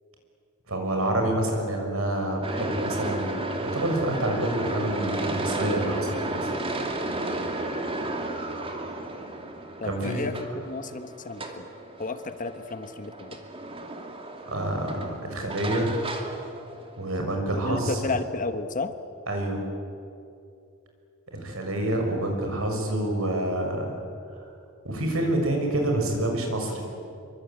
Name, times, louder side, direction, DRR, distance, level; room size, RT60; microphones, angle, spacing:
voice 1, 0.7-6.5 9.8-10.3 14.5-16.0 17.0-18.2 19.3-19.6 21.3-24.0 24.4-24.5 24.8-26.9, right 1 dB, 70° right, 3 dB, 6.3 m, -27 dB
sound 1, 2.4-17.2, right 2 dB, 25° right, 2.7 m, -33 dB
voice 2, 9.8-10.3 10.6-11.7 12.0-13.4 17.6-18.9, left 3 dB, 40° left, 9 dB, 1.3 m, -32 dB
26.0 x 24.0 x 9.0 m, 2.6 s
head